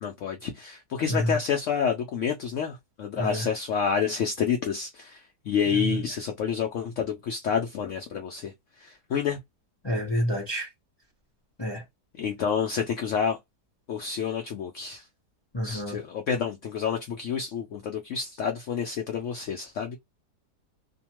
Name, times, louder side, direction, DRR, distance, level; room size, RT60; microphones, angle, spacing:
voice 1, 0.0-9.4 12.2-13.4 13.9-15.1 15.6-20.0, left 7 dB, 75° left, 0.7 m, -29 dB
voice 2, 3.2-3.5 5.7-6.0 9.8-10.7 11.6-11.8 15.5-16.0, equal, 45° left, 0.3 m, -28 dB
2.8 x 2.2 x 2.9 m
omnidirectional pair, 1.8 m